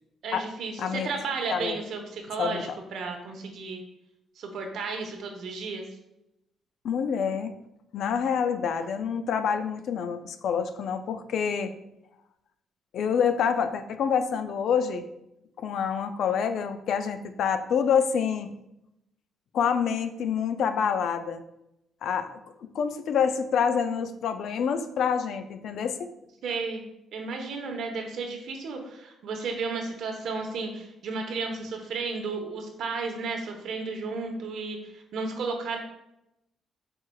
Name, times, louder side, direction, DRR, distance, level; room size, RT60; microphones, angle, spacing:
voice 1, 0.2-3.8 4.4-5.9 26.4-26.8 27.1-35.8, right 4 dB, 75° right, 3 dB, 0.9 m, -33 dB
voice 2, 0.8-1.1 1.5-1.8 2.4-2.8 6.8-7.5 7.9-11.7 12.9-15.0 15.6-18.5 19.5-21.4 22.0-26.1, left 7 dB, 70° left, 9 dB, 0.4 m, -27 dB
4.7 x 4.4 x 2.2 m, 0.85 s
cardioid pair, 90°, 0 cm